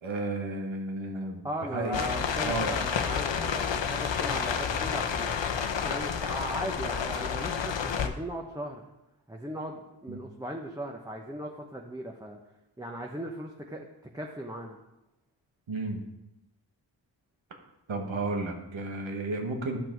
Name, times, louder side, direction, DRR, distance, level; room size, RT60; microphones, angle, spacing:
voice 1, 0.0-1.4 1.7-2.0 2.4-2.7 10.1-10.2 15.7-16.0 17.9-19.8, right 2 dB, 90° right, 2 dB, 1.6 m, -32 dB
voice 2, 1.4-5.3 5.8-8.8 9.3-12.4 12.8-13.8 14.1-14.8, right 1 dB, 10° right, 1 dB, 0.9 m, -37 dB
sound 1, 1.9-8.1, left 6 dB, 70° left, 0.9 m, -30 dB
11.5 x 5.9 x 4.6 m, 0.94 s
cardioid pair, 55°, 46 cm